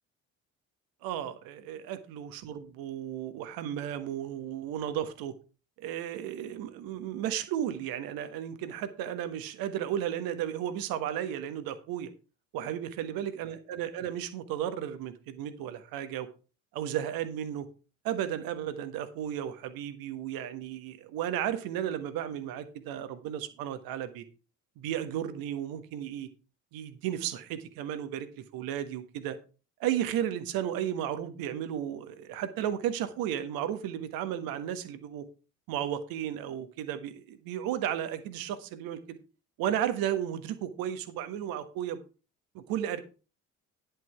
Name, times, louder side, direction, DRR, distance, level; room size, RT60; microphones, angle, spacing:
voice 1, 1.0-5.3 5.8-12.1 12.5-16.3 16.7-17.7 18.0-24.2 24.8-26.3 26.7-28.3 28.5-29.4 29.8-35.2 35.7-39.2 39.6-42.0 42.5-43.0, right 10 dB, 60° right, 10 dB, 1.4 m, -34 dB
10.5 x 6.9 x 4.6 m, 0.34 s
figure-of-eight pair, 50°, 39 cm